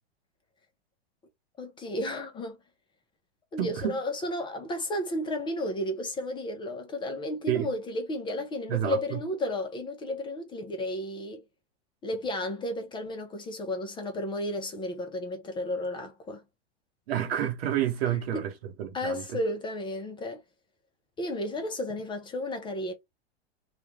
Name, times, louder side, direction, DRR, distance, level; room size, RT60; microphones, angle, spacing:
voice 1, 1.6-2.6 3.5-11.4 12.0-16.4 18.3-18.4 18.9-20.4 21.2-22.9, left 1 dB, 15° left, 0.4 m, -33 dB
voice 2, 3.6-4.0 7.5-7.7 8.7-9.2 17.1-19.4, right 11 dB, 65° right, 0.8 m, -29 dB
2.4 x 2.2 x 3.1 m
hypercardioid pair, 120°, 32 cm